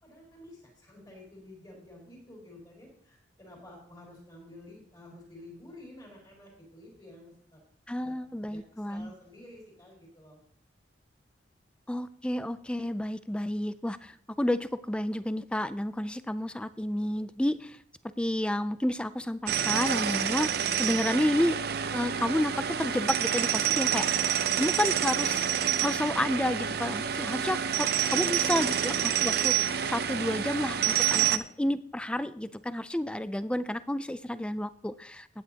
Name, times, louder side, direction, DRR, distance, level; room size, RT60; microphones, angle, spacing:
voice 1, 0.0-7.6 8.0-8.2 8.5-10.4 28.1-28.8, left 1 dB, 20° left, -3 dB, 4.6 m, -51 dB
voice 2, 7.9-9.1 11.9-17.8 18.2-20.5 20.8-21.6 21.9-25.5 25.8-35.3, left 1 dB, 5° left, 14 dB, 0.3 m, -30 dB
sound 1, 19.5-31.4, right 9 dB, 55° right, 0.5 m, -28 dB
15.5 x 9.1 x 2.9 m, 0.64 s
head